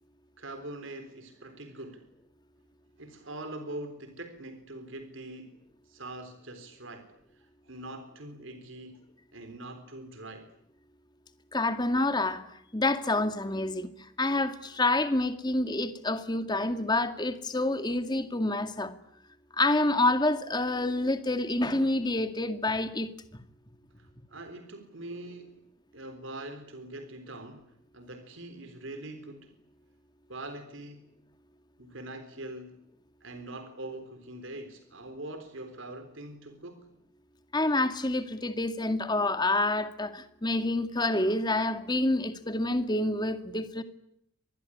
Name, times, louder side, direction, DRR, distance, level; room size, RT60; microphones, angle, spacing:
voice 1, 0.4-2.0 3.0-5.6 5.9-9.0 9.3-10.5 24.0-25.6 25.9-29.5 30.3-31.1 31.8-32.8 33.2-36.9, right 1 dB, 65° right, 3.7 m, -43 dB
voice 2, 11.5-18.9 19.5-23.1 37.5-43.8, left 2 dB, 20° left, 2.0 m, -28 dB
26.5 x 21.0 x 9.9 m
head